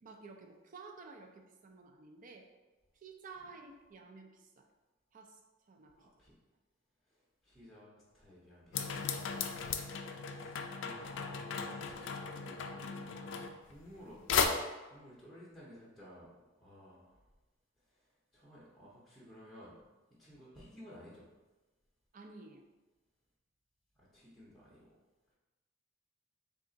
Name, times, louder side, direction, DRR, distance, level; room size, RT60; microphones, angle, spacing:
voice 1, 0.0-2.5 3.0-4.7 5.1-5.4 5.7-5.9 6.2-6.3 12.8-13.0 22.1-22.6, right 4 dB, 40° right, 4 dB, 0.4 m, -53 dB
voice 2, 5.9-6.3 7.1-9.3 10.0-17.2 18.3-19.7 20.2-21.3 24.0-24.9, equal, ahead, -9 dB, 0.7 m, -56 dB
sound 1, 8.7-14.0 14.3-14.5, left 6 dB, 65° left, 0.3 m, -36 dB
3.6 x 2.4 x 3.8 m, 1.1 s
head